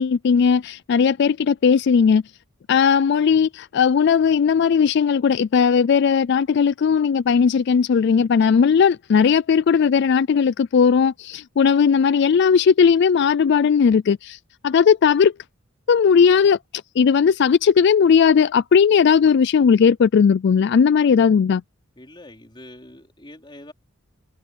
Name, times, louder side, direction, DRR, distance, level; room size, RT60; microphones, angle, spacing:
voice 1, 0.0-2.2 2.7-15.3 15.9-16.6 17.0-21.6, left 6 dB, 60° left, 0.3 m, -17 dB
voice 2, 22.0-23.7, left 1 dB, 25° left, 3.7 m, -44 dB
head